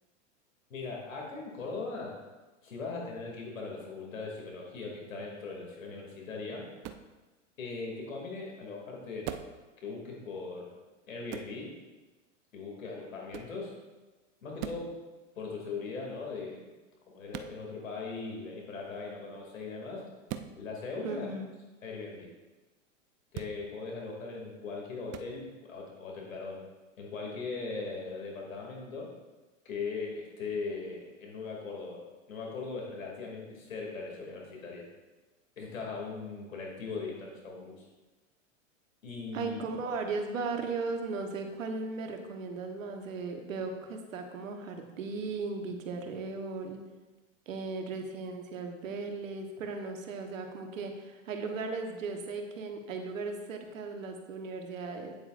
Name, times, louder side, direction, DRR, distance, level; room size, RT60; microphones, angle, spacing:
voice 1, 0.7-2.2 2.6-6.6 7.6-9.3 9.8-10.7 11.1-11.7 12.5-13.7 14.4-15.0 15.4-16.6 17.1-20.0 20.5-21.3 21.8-22.3 23.3-26.6 27.0-29.1 29.6-34.8 35.6-37.9 39.0-39.8, left 4 dB, 90° left, -1 dB, 2.6 m, -39 dB
sound 1, 6.8-7.1 9.2-9.6 11.3-11.6 13.3-13.6 14.6-14.9 17.3-17.6 20.3-20.5 23.3-23.6 25.1-25.3, right 11 dB, 30° right, 0.4 m, -40 dB
voice 2, 21.0-21.5 39.3-46.8 47.5-55.2, right 4 dB, 80° right, 4 dB, 1.2 m, -37 dB
8.9 x 7.8 x 2.5 m, 1.2 s
hypercardioid pair, 110°, 38 cm